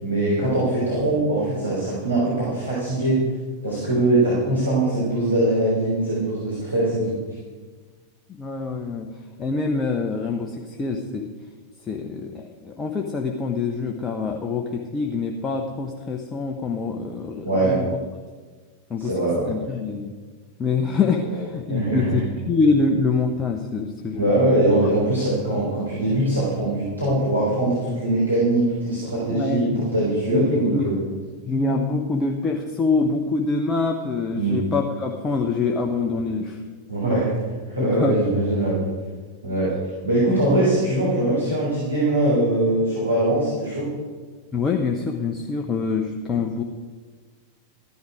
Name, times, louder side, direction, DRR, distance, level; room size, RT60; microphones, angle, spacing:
voice 1, 0.0-3.2 3.6-7.2 17.4-17.7 19.0-19.5 21.7-22.2 24.1-31.0 34.3-34.6 36.9-37.3 37.7-38.8 39.4-39.7 40.0-43.9, right 1 dB, 85° right, -8 dB, 3.8 m, -22 dB
voice 2, 8.3-9.1 9.4-11.3 11.8-17.9 18.9-19.1 19.4-20.1 20.6-22.2 22.5-24.4 29.3-29.9 30.3-30.9 31.4-36.6 37.8-38.2 44.5-46.6, left 4 dB, 20° left, 2 dB, 0.9 m, -25 dB
14.0 x 11.0 x 4.9 m, 1.5 s
figure-of-eight pair, 90°, 0 cm